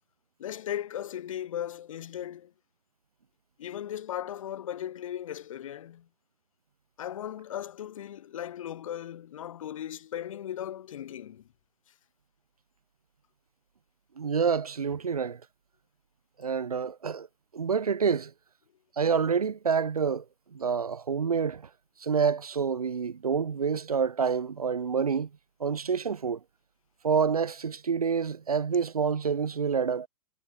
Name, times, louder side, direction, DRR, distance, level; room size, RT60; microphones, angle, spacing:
voice 1, 0.4-2.5 3.6-6.1 7.0-11.4, left 10 dB, 60° left, 5.6 m, -37 dB
voice 2, 14.2-15.4 16.4-17.3 17.5-18.3 19.0-20.2 20.5-21.6 22.0-25.3 25.6-26.4 27.0-30.1, right 6 dB, 75° right, 1.0 m, -27 dB
figure-of-eight pair, 95°, 19 cm